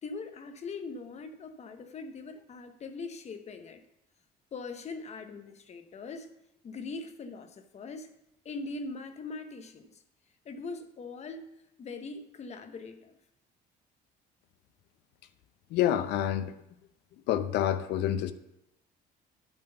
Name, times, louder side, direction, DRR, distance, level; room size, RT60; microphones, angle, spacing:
voice 1, 0.0-3.8 4.5-6.3 6.6-8.1 8.4-10.0 10.4-11.5 11.8-13.1, left 3 dB, 40° left, 8 dB, 0.9 m, -41 dB
voice 2, 15.7-16.5 17.3-18.3, left 11 dB, 80° left, 12 dB, 0.6 m, -27 dB
8.9 x 3.8 x 6.8 m, 0.85 s
cardioid pair, 110°, 17 cm